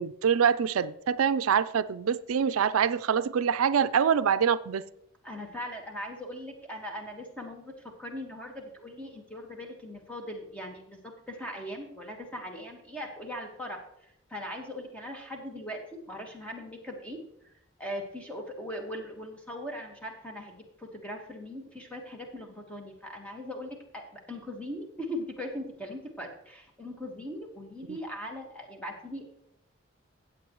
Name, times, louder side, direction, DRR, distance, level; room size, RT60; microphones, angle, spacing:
voice 1, 0.0-4.8 27.9-28.0, right 7 dB, 85° right, 14 dB, 0.4 m, -25 dB
voice 2, 5.2-17.2 17.8-29.2, equal, 5° left, 1 dB, 1.5 m, -40 dB
15.5 x 7.9 x 3.0 m, 0.81 s
head